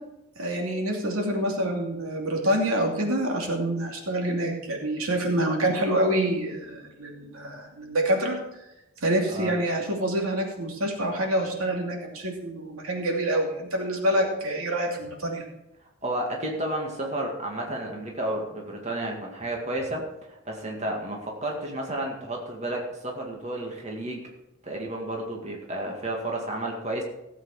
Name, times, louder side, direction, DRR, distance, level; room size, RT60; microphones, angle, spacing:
voice 1, 0.4-8.4 9.0-15.4, right 1 dB, 90° right, 1 dB, 2.6 m, -26 dB
voice 2, 16.0-24.2 24.6-27.0, right 1 dB, 30° right, 0 dB, 2.0 m, -32 dB
15.5 x 8.1 x 4.9 m, 0.91 s
head